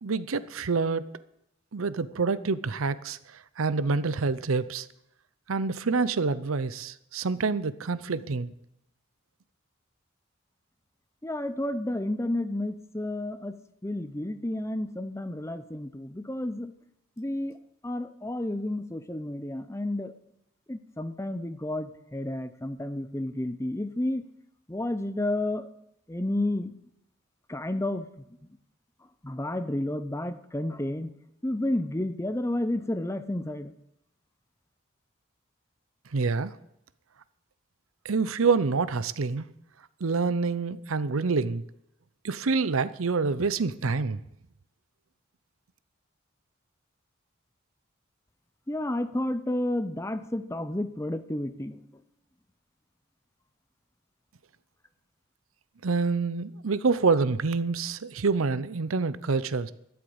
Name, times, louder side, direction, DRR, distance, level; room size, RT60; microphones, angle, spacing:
voice 1, 0.0-1.1 1.7-3.2 3.6-4.9 5.5-8.5 36.1-36.5 38.0-39.5 40.0-41.6 42.2-44.2 55.8-59.7, right 4 dB, 90° right, 0.7 m, -27 dB
voice 2, 11.2-13.6 13.8-16.7 17.2-17.6 17.8-20.1 20.7-24.3 24.7-25.7 26.1-26.8 27.5-28.1 29.2-31.1 31.4-33.7 48.7-51.9, left 1 dB, 15° left, 0.7 m, -31 dB
12.5 x 8.1 x 8.7 m
head